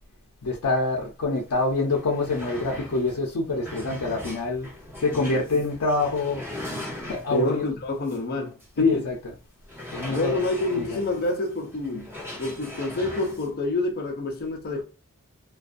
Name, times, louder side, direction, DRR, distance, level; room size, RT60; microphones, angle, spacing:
voice 1, 0.4-4.7 5.0-6.4 7.1-7.7 8.8-9.3 9.9-10.3 10.8-11.0, left 3 dB, 90° left, 0.5 m, -25 dB
sound 1, 1.5-1.6 1.9-7.6 8.1-8.2 8.6-8.7 9.6-13.5, left 1 dB, 10° right, 1.1 m, -39 dB
voice 2, 5.1-5.4 7.3-9.1 10.1-14.8, left 2 dB, 45° left, 0.5 m, -28 dB
2.4 x 2.3 x 2.4 m
head